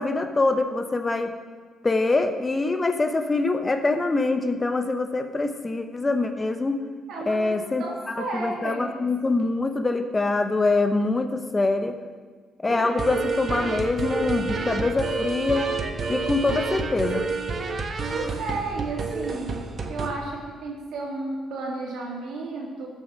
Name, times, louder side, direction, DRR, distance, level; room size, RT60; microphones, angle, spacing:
voice 1, 0.0-1.3 1.8-6.8 7.3-12.0 12.6-15.7 16.1-17.2, left 3 dB, 25° left, 7 dB, 0.8 m, -24 dB
voice 2, 7.1-8.9 18.1-22.9, right 3 dB, 80° right, -1 dB, 2.6 m, -33 dB
sound 1, 12.7-20.1, right 4 dB, 45° right, 1.1 m, -29 dB
14.0 x 6.5 x 5.2 m, 1.5 s
cardioid pair, 90°, 0 cm